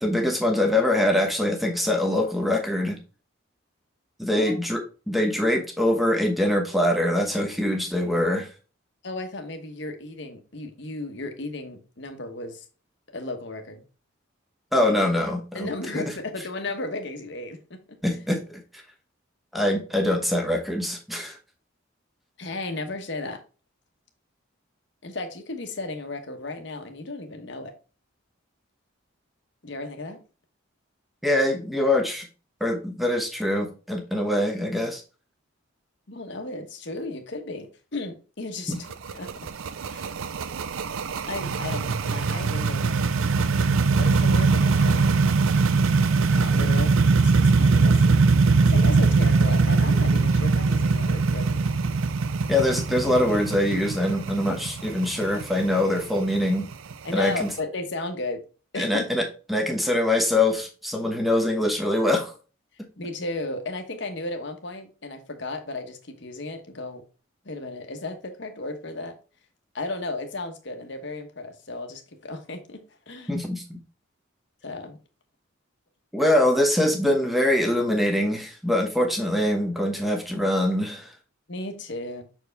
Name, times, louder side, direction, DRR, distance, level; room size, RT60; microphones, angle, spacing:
voice 1, 0.0-3.0 4.2-4.8 5.1-8.5 14.7-15.7 15.9-16.0 18.0-18.6 19.5-21.4 31.2-32.3 32.6-35.0 38.7-38.8 52.5-56.7 57.1-57.5 58.7-59.2 59.5-62.3 73.3-73.8 76.1-81.1, left 1 dB, ahead, 3 dB, 1.0 m, -23 dB
voice 2, 9.0-12.6 13.1-13.8 14.7-15.0 15.5-18.3 22.4-23.4 25.0-27.7 29.6-30.2 36.1-38.7 39.1-39.3 39.9-40.1 41.3-43.1 43.9-45.0 46.2-48.1 48.6-51.7 57.0-58.4 58.7-59.2 63.0-67.0 67.4-69.1 69.7-73.3 74.6-75.0 81.5-82.2, left 2 dB, 55° left, 6 dB, 1.1 m, -34 dB
sound 1, 38.7-57.5, right 4 dB, 80° right, 0.5 m, -22 dB
6.3 x 4.6 x 3.3 m, 0.35 s
head